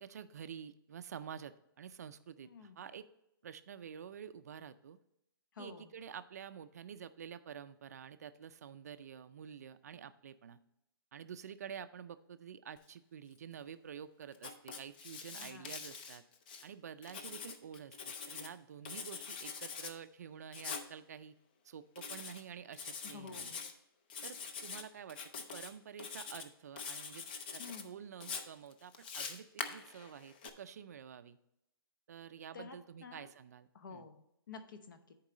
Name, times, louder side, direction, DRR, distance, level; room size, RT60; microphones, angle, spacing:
voice 1, 0.0-3.1 3.4-5.0 5.6-10.6 11.1-16.2 16.6-21.4 21.6-23.5 24.2-27.3 27.5-31.4 32.1-34.1, right 8 dB, 40° right, 12 dB, 0.4 m, -49 dB
voice 2, 2.4-2.8 5.5-5.9 15.3-15.7 23.1-23.6 27.6-27.9 32.5-33.3 33.7-35.1, left 5 dB, 55° left, 9 dB, 1.0 m, -51 dB
Writing, 14.3-16.6 17.0-18.5 18.8-19.9 20.5-20.9 22.0-22.4 22.7-23.7 24.1-24.8 25.1-25.7 26.0-26.5 26.8-27.8 28.2-30.5, left 5 dB, 25° left, 0.5 m, -44 dB
10.5 x 4.6 x 3.9 m, 0.82 s
hypercardioid pair, 170°, 13 cm